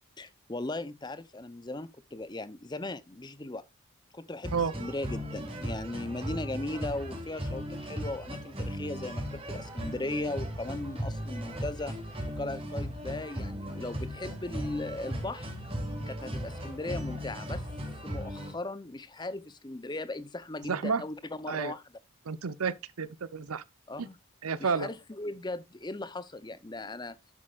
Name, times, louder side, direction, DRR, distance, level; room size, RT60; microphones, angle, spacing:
voice 1, 0.2-3.6 4.1-11.9 12.4-15.5 16.1-17.7 18.0-21.8 23.9-24.2 24.6-27.2, left 2 dB, 20° left, 0.6 m, -38 dB
sound 1, 4.4-18.5, equal, 25° right, 2.7 m, -37 dB
voice 2, 20.7-21.0 21.5-21.7 22.3-23.6 24.0-24.1 24.4-24.9, right 5 dB, 80° right, 0.7 m, -31 dB
11.0 x 7.5 x 2.4 m
head